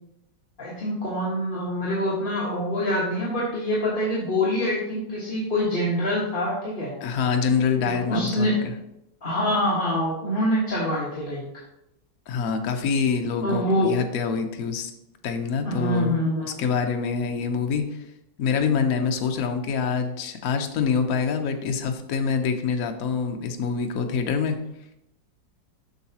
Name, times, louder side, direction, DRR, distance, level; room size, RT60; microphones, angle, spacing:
voice 1, 0.6-6.9 7.8-8.6 9.2-11.4 13.4-13.9 15.6-16.6, left 1 dB, 30° left, -7 dB, 1.5 m, -25 dB
voice 2, 7.0-8.7 12.3-14.9 15.2-16.2 16.6-17.8 18.4-24.6, left 6 dB, 60° left, 5 dB, 1.0 m, -25 dB
7.9 x 6.3 x 2.9 m, 0.83 s
omnidirectional pair, 2.0 m